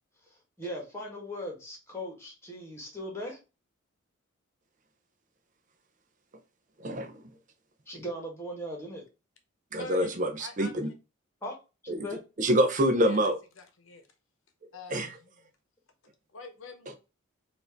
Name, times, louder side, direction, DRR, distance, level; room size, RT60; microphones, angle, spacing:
voice 1, 0.3-3.4 7.9-9.0 11.4-11.5 11.8-12.2, equal, 10° left, 1.5 m, -38 dB
voice 2, 6.8-7.2 9.7-10.9 11.9-12.1 12.4-13.3 14.9-15.1, right 1 dB, 35° right, 0.6 m, -26 dB
voice 3, 9.8-10.1 10.4-10.9 13.0-13.2 13.6-14.1 14.7-15.3 16.3-17.0, left 4 dB, 65° left, 0.9 m, -43 dB
4.5 x 2.6 x 4.4 m
head